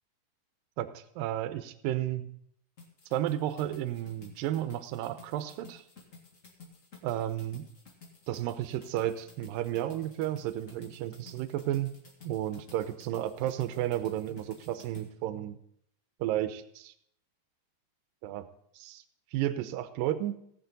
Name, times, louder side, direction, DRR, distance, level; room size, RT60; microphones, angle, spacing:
voice 1, 0.8-2.3 3.1-5.8 7.0-7.7 8.3-11.9 12.3-15.6 16.2-16.9 18.2-18.5 18.8-19.0 19.3-20.4, right 13 dB, 85° right, 11 dB, 2.4 m, -32 dB
sound 1, 2.8-15.1, left 4 dB, 30° left, 1.7 m, -53 dB
18.0 x 7.6 x 4.0 m, 0.69 s
omnidirectional pair, 4.0 m